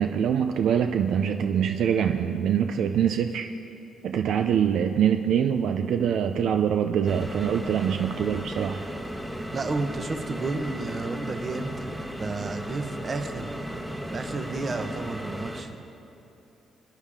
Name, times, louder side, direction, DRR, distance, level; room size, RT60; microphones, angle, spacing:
voice 1, 0.0-3.5 4.0-8.9, right 8 dB, 75° right, 6 dB, 0.4 m, -24 dB
sound 1, 7.0-15.6, equal, 5° right, 1.1 m, -35 dB
voice 2, 9.5-13.5 14.1-15.8, right 3 dB, 40° right, 6 dB, 1.1 m, -32 dB
21.0 x 9.9 x 3.7 m, 2.9 s
cardioid pair, 90°, 0 cm